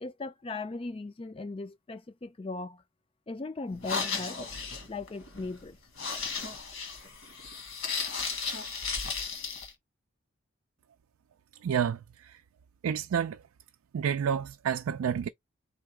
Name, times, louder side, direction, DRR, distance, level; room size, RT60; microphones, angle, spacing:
voice 1, 0.0-2.8 3.3-4.4 4.9-5.8, left 3 dB, 25° left, 0.4 m, -38 dB
sound 1, 3.7-9.7, left 5 dB, 65° left, 1.7 m, -35 dB
voice 2, 11.6-12.0 12.8-13.4 13.9-15.3, right 7 dB, 85° right, 0.3 m, -29 dB
3.9 x 3.7 x 3.4 m
head